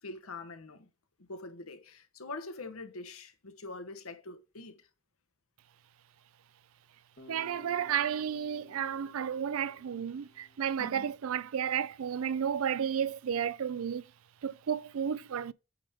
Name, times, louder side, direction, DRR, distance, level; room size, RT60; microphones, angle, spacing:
voice 1, 0.0-0.9 1.2-4.9 10.8-11.1, left 3 dB, 85° left, 1.1 m, -44 dB
Bass guitar, 7.2-11.1, left 2 dB, 55° left, 2.0 m, -57 dB
voice 2, 7.3-14.0 14.4-15.5, right 8 dB, 80° right, 0.4 m, -32 dB
8.6 x 3.5 x 4.6 m
head